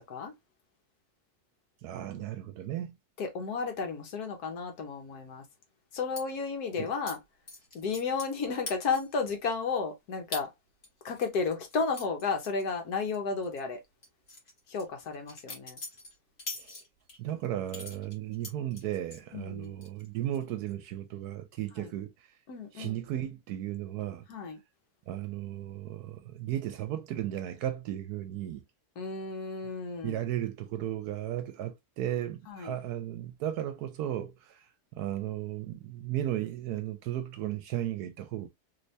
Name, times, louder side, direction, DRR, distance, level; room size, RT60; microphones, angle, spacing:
voice 1, 1.8-2.9 6.8-6.9 16.6-16.7 17.2-22.1 22.7-24.2 25.1-28.6 30.0-34.6 35.0-38.5, right 12 dB, 80° right, 1.1 m, -35 dB
voice 2, 3.2-5.4 5.9-7.2 7.7-10.5 11.0-13.8 14.7-15.8 19.3-19.8 21.8-21.9 22.5-23.0 24.3-24.6 29.0-30.2 32.5-32.8, left 4 dB, 75° left, 1.4 m, -33 dB
sound 1, 6.2-6.3 7.1-7.2 7.5-8.4 8.7-9.2 9.6-9.7 10.3-10.5 10.8-13.2 13.4-13.6 14.0-17.2 17.7-19.2 19.6-20.1 20.3-20.7, left 2 dB, 40° left, 1.7 m, -43 dB
3.3 x 3.2 x 2.7 m
omnidirectional pair, 1.7 m